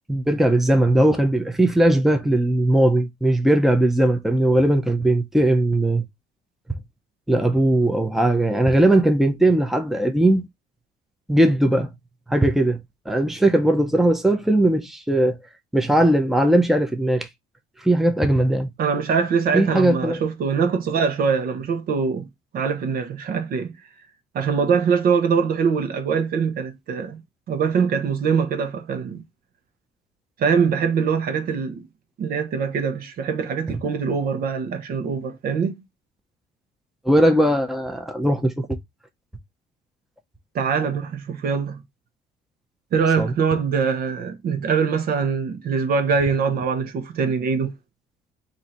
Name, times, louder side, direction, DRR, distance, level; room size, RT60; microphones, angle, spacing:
voice 1, 0.1-6.0 7.3-10.5 11.3-11.9 12.3-12.8 13.1-15.4 15.7-17.3 17.8-18.7 19.5-20.2 37.0-38.6 43.2-43.3, right 1 dB, ahead, 0.7 m, -19 dB
voice 2, 18.8-22.3 22.5-23.8 24.3-27.2 27.5-29.2 30.4-31.9 32.2-35.7 40.5-41.8 42.9-47.7, right 6 dB, 60° right, 1.0 m, -23 dB
3.8 x 2.7 x 4.3 m
cardioid pair, 110°, 17 cm